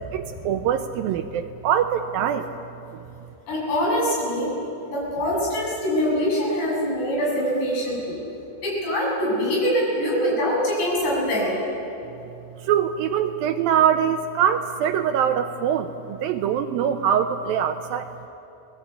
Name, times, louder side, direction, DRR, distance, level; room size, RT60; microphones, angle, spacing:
voice 1, 0.1-2.5 12.6-18.1, right 9 dB, 80° right, 8 dB, 2.2 m, -23 dB
voice 2, 3.5-4.5 4.9-8.2 8.6-11.6, equal, 90° left, -4 dB, 9.9 m, -24 dB
29.0 x 20.5 x 8.6 m, 2.9 s
omnidirectional pair, 4.8 m